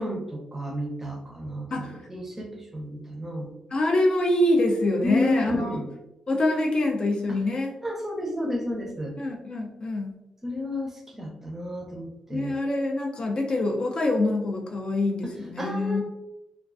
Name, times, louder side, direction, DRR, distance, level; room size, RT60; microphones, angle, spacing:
voice 1, 0.0-3.5 5.0-5.9 7.3-7.4 7.8-9.1 10.4-12.5 15.2-16.0, left 1 dB, 15° right, 0 dB, 0.5 m, -31 dB
voice 2, 3.7-5.8 6.3-7.7 9.2-10.1 12.3-16.0, left 1 dB, 45° left, 2 dB, 0.4 m, -25 dB
2.3 x 2.3 x 2.4 m, 0.92 s
cardioid pair, 100°, 2 cm